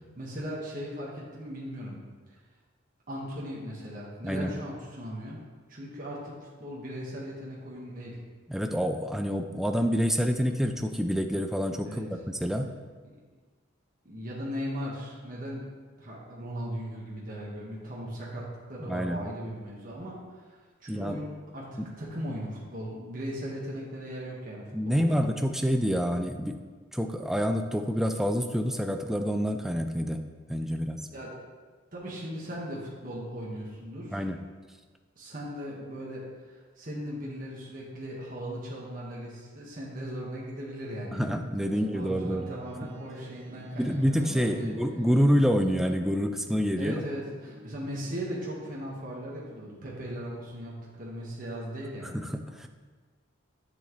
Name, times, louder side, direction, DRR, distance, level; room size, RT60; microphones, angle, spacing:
voice 1, 0.1-2.0 3.1-5.4 5.7-8.2 11.8-12.1 14.0-15.6 16.0-21.7 22.0-25.2 31.1-31.3 31.9-34.3 35.2-44.7 46.8-52.2, equal, 40° right, -5 dB, 1.5 m, -38 dB
voice 2, 8.5-12.7 18.9-19.2 20.9-21.2 21.8-21.9 24.7-26.6 26.9-30.2 30.5-31.1 34.1-34.4 41.1-42.5 43.8-46.9 52.1-52.7, equal, ahead, 5 dB, 0.4 m, -27 dB
sound 1, 41.1-51.7, right 1 dB, 70° right, 0.8 m, -51 dB
10.0 x 7.3 x 3.1 m, 1.4 s
head